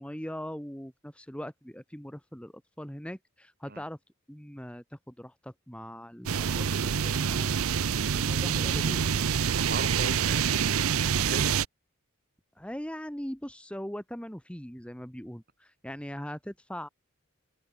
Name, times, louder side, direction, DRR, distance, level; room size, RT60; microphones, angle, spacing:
voice 1, 0.0-4.0 4.3-7.7 8.1-9.3 12.6-16.9, equal, 5° left, 2.1 m, -40 dB
sound 1, 6.3-11.7, right 7 dB, 80° right, 0.6 m, -26 dB
voice 2, 9.5-11.6, right 3 dB, 45° right, 4.0 m, -38 dB
head